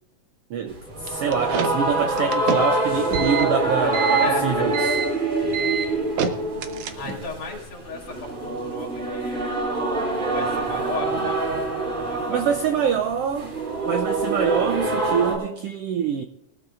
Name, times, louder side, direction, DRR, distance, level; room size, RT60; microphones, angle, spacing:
voice 1, 0.5-4.8 12.3-13.6 13.8-16.2, right 7 dB, 80° right, 1.3 m, -25 dB
sound 1, 0.7-15.4, right 2 dB, 50° right, 5.7 m, -25 dB
sound 2, 1.1-7.3, right 6 dB, 65° right, 2.0 m, -28 dB
voice 2, 3.8-4.7 5.6-5.8 7.0-9.5 10.3-11.4 12.1-12.8, left 3 dB, 85° left, 3.9 m, -36 dB
20.0 x 13.5 x 2.5 m
omnidirectional pair, 3.5 m